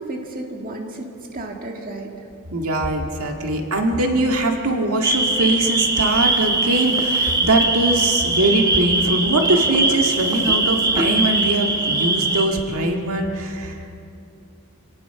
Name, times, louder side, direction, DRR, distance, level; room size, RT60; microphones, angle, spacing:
voice 1, 0.0-2.3, right 2 dB, 40° right, 1 dB, 2.0 m, -33 dB
voice 2, 2.5-14.0, right 2 dB, 85° right, 2 dB, 1.9 m, -21 dB
sound 1, 5.0-12.5, right 2 dB, 15° right, 1.3 m, -21 dB
28.0 x 18.0 x 5.8 m, 2.7 s
head